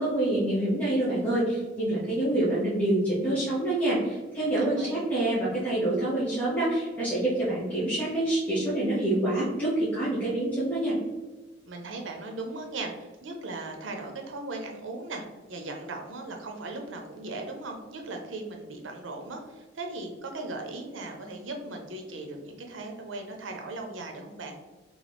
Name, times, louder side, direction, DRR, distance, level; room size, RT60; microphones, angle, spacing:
voice 1, 0.0-11.0, right 1 dB, 10° left, -11 dB, 1.1 m, -26 dB
voice 2, 4.6-5.0 11.7-24.6, right 2 dB, 90° right, 3 dB, 0.7 m, -38 dB
3.9 x 3.1 x 3.4 m, 1.2 s
head